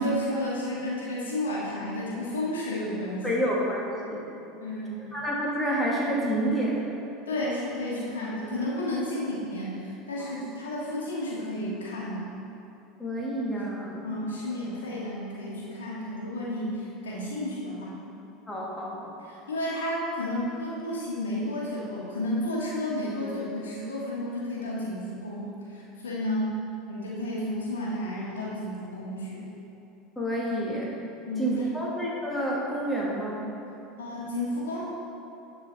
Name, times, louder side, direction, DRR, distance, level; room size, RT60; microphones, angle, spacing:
voice 1, 0.0-3.4 4.6-5.1 7.3-12.3 14.0-17.9 19.2-26.5 26.9-29.4 31.2-31.5 34.0-34.8, left 1 dB, 90° left, -5 dB, 1.6 m, -32 dB
voice 2, 3.2-4.3 5.1-6.8 10.2-10.4 13.0-14.2 18.5-19.1 30.2-31.0 31.4-33.5, right 1 dB, 10° left, -4 dB, 1.3 m, -29 dB
9.9 x 4.0 x 4.0 m, 3.0 s
hypercardioid pair, 85°, 0 cm